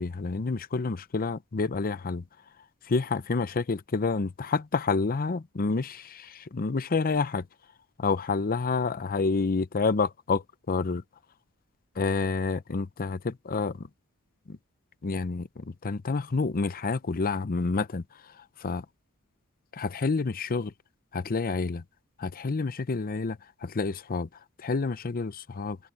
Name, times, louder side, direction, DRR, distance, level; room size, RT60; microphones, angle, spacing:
voice 1, 0.0-2.2 2.9-7.4 8.0-11.0 12.0-13.9 14.5-14.6 15.0-18.0 18.6-18.8 19.7-20.7 21.1-21.8 22.2-24.3 24.6-25.8, left 4 dB, 40° left, 0.6 m, -29 dB
head